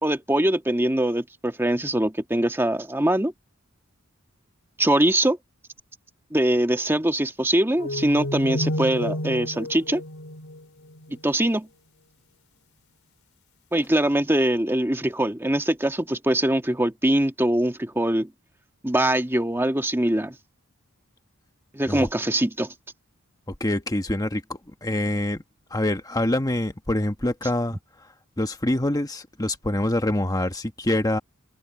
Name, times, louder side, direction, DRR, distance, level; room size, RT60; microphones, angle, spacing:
voice 1, 0.0-3.3 4.8-5.4 6.3-10.0 11.2-11.7 13.7-18.3 18.8-20.4 21.7-22.7, right 1 dB, 10° right, 1.5 m, -22 dB
sound 1, 7.8-11.2, left 1 dB, 80° left, 3.8 m, -30 dB
voice 2, 23.6-25.4 25.7-27.8 28.4-31.2, left 1 dB, 20° left, 1.3 m, -25 dB
open air
head